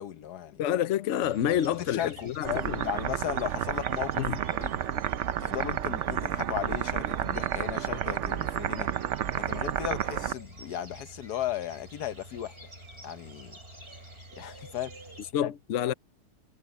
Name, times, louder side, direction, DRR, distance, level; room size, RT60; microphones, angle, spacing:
voice 1, 0.0-0.6 1.7-4.2 4.6-4.7 5.4-8.9 9.4-12.6 13.0-13.6 14.4-15.0 15.3-15.5, left 11 dB, 75° left, 1.4 m, -36 dB
voice 2, 0.6-2.9 4.2-4.4 15.3-15.9, left 10 dB, 60° left, 0.9 m, -28 dB
sound 1, 1.2-15.3, right 1 dB, 35° right, 8.0 m, -49 dB
sound 2, 2.4-10.3, right 10 dB, 60° right, 0.8 m, -31 dB
omnidirectional pair, 1.7 m